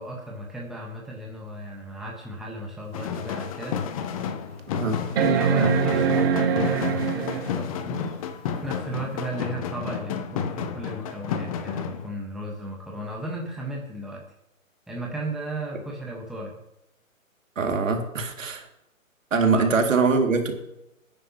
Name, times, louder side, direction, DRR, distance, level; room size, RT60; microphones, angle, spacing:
voice 1, 0.0-4.0 5.2-8.1 8.6-14.2 14.9-16.6 19.5-19.7, right 1 dB, ahead, -2 dB, 1.2 m, -35 dB
sound 1, 2.9-12.1, left 7 dB, 25° left, 0.8 m, -31 dB
sound 2, 3.0-3.1 3.7-3.8 5.2-7.6 9.3-9.4, right 6 dB, 45° right, 1.0 m, -23 dB
voice 2, 17.6-18.6 19.3-20.5, right 4 dB, 65° right, 4 dB, 2.4 m, -23 dB
19.0 x 9.8 x 2.9 m, 0.85 s
hypercardioid pair, 140°, 41 cm